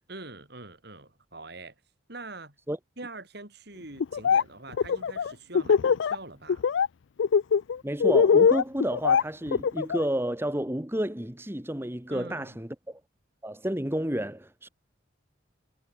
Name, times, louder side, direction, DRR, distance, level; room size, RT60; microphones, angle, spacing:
voice 1, 0.1-1.7 2.1-2.6 3.0-6.7 12.1-12.6, right 2 dB, 55° right, 4.2 m, -44 dB
Laughter, 4.0-4.4 4.7-6.1 6.5-6.9 7.2-10.0, left 6 dB, 70° left, 0.4 m, -22 dB
voice 2, 7.8-13.0 13.4-14.7, right 1 dB, 10° right, 1.3 m, -31 dB
head